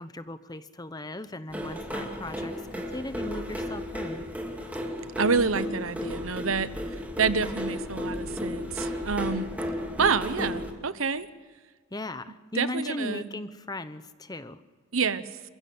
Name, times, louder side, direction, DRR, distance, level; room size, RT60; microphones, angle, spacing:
voice 1, 0.0-4.2 11.9-14.6, left 1 dB, 20° left, 12 dB, 0.9 m, -37 dB
sound 1, 1.5-10.7, equal, 5° right, 2.4 m, -34 dB
voice 2, 5.2-6.7 7.2-9.5 10.0-11.3 12.5-13.3 14.9-15.3, right 5 dB, 75° right, 14 dB, 1.0 m, -27 dB
27.5 x 15.5 x 7.8 m, 1.4 s
head